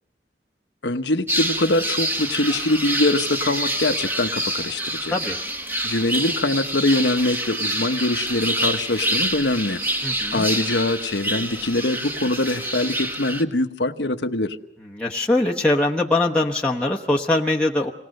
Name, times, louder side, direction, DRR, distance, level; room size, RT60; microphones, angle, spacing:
voice 1, 0.8-5.1 5.8-9.8 10.3-14.6, left 2 dB, 85° left, 8 dB, 1.2 m, -23 dB
sound 1, 1.3-13.4, right 1 dB, 10° right, 1.3 m, -27 dB
voice 2, 10.0-10.5 15.0-17.9, left 2 dB, 5° left, -3 dB, 1.0 m, -22 dB
27.0 x 19.5 x 6.6 m, 0.87 s
head